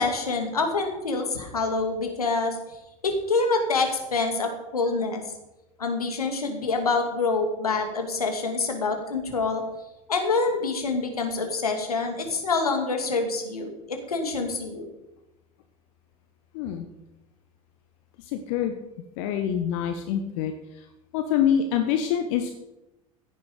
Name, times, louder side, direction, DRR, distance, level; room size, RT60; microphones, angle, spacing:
voice 1, 0.0-2.6 3.0-5.2 5.8-9.6 10.1-14.9, left 3 dB, 80° left, 5 dB, 2.5 m, -26 dB
voice 2, 16.5-16.8 18.2-18.7 19.2-20.8 21.1-22.5, left 9 dB, 60° left, 6 dB, 1.3 m, -26 dB
16.0 x 10.5 x 5.1 m, 0.94 s
figure-of-eight pair, 75°, 19 cm